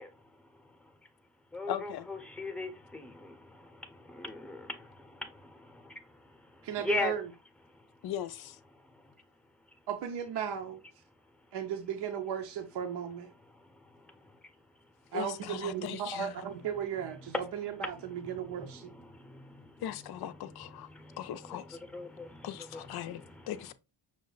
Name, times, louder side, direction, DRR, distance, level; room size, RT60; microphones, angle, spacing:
voice 1, 0.0-7.2 7.7-8.1 8.7-9.9 11.1-11.6 13.3-15.1 17.0-23.6, left 2 dB, ahead, 0.8 m, -42 dB
voice 2, 1.7-2.1 8.0-8.6 15.1-16.4 19.8-20.9 21.2-21.8 22.4-23.2 23.5-23.7, left 11 dB, 60° left, 0.5 m, -39 dB
voice 3, 6.6-7.2 9.9-10.8 11.5-13.3 15.1-18.9, right 8 dB, 65° right, 0.7 m, -36 dB
6.2 x 2.1 x 3.8 m
cardioid pair, 105°, 44 cm